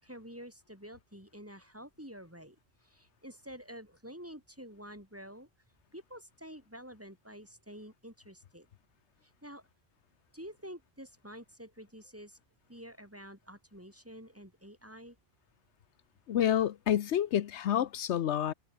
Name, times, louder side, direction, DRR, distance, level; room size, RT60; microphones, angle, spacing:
voice 1, 0.0-2.6 2.8-5.5 5.9-8.7 9.2-9.6 10.3-12.4 12.7-15.2, equal, 10° right, 6.7 m, -49 dB
voice 2, 16.3-18.5, left 10 dB, 80° left, 1.0 m, -28 dB
omnidirectional pair, 1.2 m